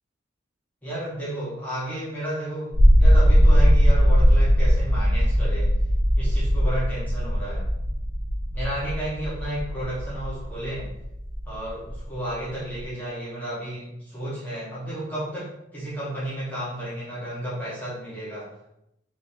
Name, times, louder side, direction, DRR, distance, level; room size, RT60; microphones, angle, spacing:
voice 1, 0.8-5.7 6.2-7.7 8.5-10.9 11.5-18.5, right 1 dB, 10° left, -9 dB, 1.4 m, -32 dB
sound 1, 2.7-12.8, equal, 50° right, 1.3 m, -19 dB
3.4 x 3.1 x 4.4 m, 0.81 s
head